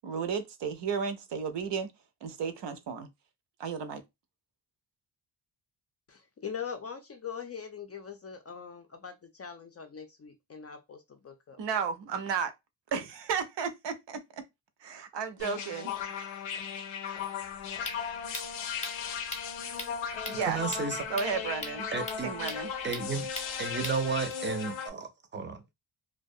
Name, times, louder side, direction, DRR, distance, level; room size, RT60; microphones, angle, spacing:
voice 1, 0.0-1.9 2.2-3.1 3.6-4.0 11.6-12.5 12.9-14.2 14.8-16.0 20.3-20.6 21.1-21.9 22.2-22.7, right 6 dB, 70° right, 0.6 m, -33 dB
voice 2, 6.1-11.6, left 7 dB, 35° left, 0.4 m, -42 dB
sound 1, 15.4-24.9, left 7 dB, 90° left, 0.6 m, -37 dB
sound 2, 17.4-24.3, left 2 dB, 15° left, 0.7 m, -43 dB
voice 3, 20.4-21.0 21.9-22.3 22.8-23.3 23.6-25.7, right 5 dB, 25° right, 0.5 m, -33 dB
2.3 x 2.2 x 2.6 m
cardioid pair, 95°, 45 cm